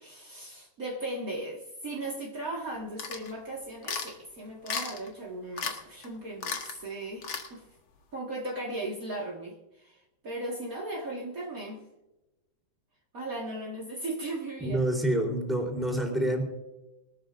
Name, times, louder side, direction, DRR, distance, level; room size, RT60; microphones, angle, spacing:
voice 1, 0.0-7.6 8.1-11.8 13.1-14.8, right 1 dB, 70° right, -3 dB, 0.8 m, -37 dB
sound 1, 3.0-3.3 3.8-4.1 4.7-5.1 5.6-5.8 6.0-6.1 6.4-6.8 7.2-7.5, left 5 dB, 90° left, 1.1 m, -34 dB
voice 2, 14.6-16.4, right 1 dB, ahead, 0 dB, 2.9 m, -27 dB
22.5 x 13.0 x 2.6 m, 1.0 s
omnidirectional pair, 4.8 m